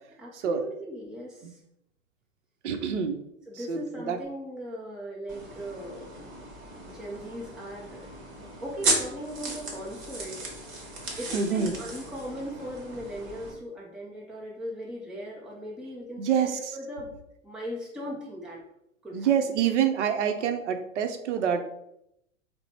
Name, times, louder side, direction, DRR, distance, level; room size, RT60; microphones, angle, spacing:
voice 1, 0.2-1.6 3.5-6.3 6.7-8.1 8.6-10.4 11.2-17.1 17.4-18.6 19.0-19.3, equal, ahead, -3 dB, 0.4 m, -38 dB
voice 2, 2.6-3.2 3.7-4.2 11.3-11.7 16.2-16.6 19.1-21.6, right 8 dB, 60° right, 7 dB, 0.6 m, -26 dB
sound 1, 5.3-13.5, right 2 dB, 30° right, 1.1 m, -35 dB
3.9 x 2.0 x 4.1 m, 0.79 s
figure-of-eight pair, 105°, 40 cm